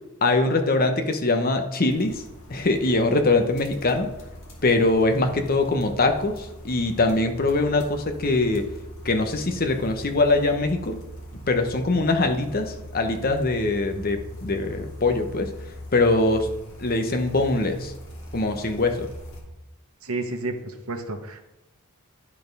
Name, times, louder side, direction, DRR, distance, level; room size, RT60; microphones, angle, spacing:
voice 1, 0.2-2.2 2.5-4.1 4.6-8.6 9.0-11.0 11.5-15.5 15.9-16.5 16.8-17.9 18.3-19.1, left 2 dB, 40° left, 6 dB, 0.9 m, -22 dB
sound 1, 1.9-19.4, equal, 55° left, 2.0 m, -41 dB
voice 2, 20.0-21.4, right 2 dB, 75° right, 5 dB, 1.1 m, -31 dB
10.0 x 4.2 x 5.3 m, 0.95 s
head